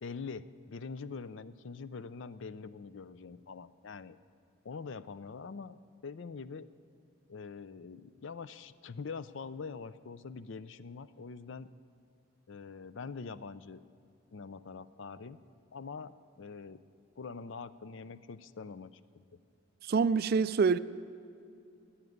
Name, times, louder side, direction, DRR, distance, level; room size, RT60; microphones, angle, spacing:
voice 1, 0.0-4.2 4.6-6.7 7.3-11.7 12.5-13.8 14.3-15.4 15.7-16.8 17.2-19.0 19.3-19.4, left 5 dB, 60° left, 0.4 m, -44 dB
voice 2, 19.8-20.8, right 5 dB, 45° right, 0.3 m, -26 dB
16.0 x 8.8 x 9.4 m
head